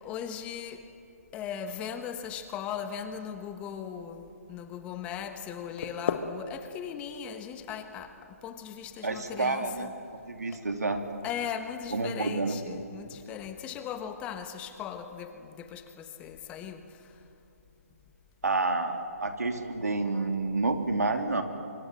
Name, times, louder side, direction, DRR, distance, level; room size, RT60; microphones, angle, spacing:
voice 1, 0.0-0.8 1.3-8.1 8.4-9.9 10.5-10.6 11.2-16.8, left 8 dB, 15° left, 9 dB, 1.2 m, -38 dB
sound 1, 5.5-11.4, left 6 dB, 45° left, 1.6 m, -40 dB
voice 2, 9.0-9.9 10.3-11.0 11.9-12.6 18.4-21.4, right 3 dB, 80° right, 6 dB, 3.1 m, -29 dB
25.5 x 24.5 x 7.5 m, 2.6 s
figure-of-eight pair, 155°, 8 cm